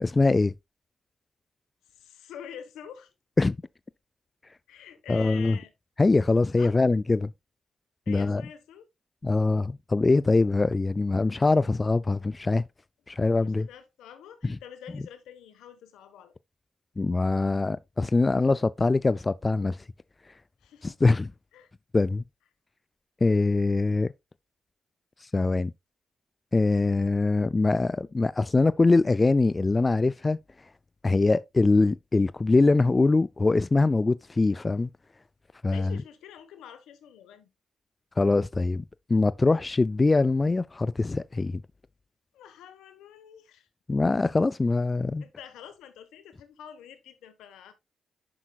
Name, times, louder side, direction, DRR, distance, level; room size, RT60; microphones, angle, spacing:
voice 1, 0.0-0.5 3.4-3.6 5.1-5.6 6.0-7.3 8.1-8.4 9.2-12.6 13.1-13.7 14.4-14.6 17.0-19.8 20.8-21.3 21.9-22.2 23.2-24.1 25.3-25.7 26.5-30.4 31.0-34.9 35.6-35.9 38.2-38.8 39.1-41.6 43.9-45.2, left 3 dB, 30° left, 0.3 m, -23 dB
voice 2, 1.9-3.1 4.7-5.7 6.6-6.7 8.0-8.9 13.4-16.4 20.6-21.0 21.5-21.7 35.7-37.5 42.3-43.7 45.2-47.7, left 9 dB, 90° left, 1.2 m, -46 dB
9.9 x 6.0 x 2.4 m
supercardioid pair, 60°, 0 cm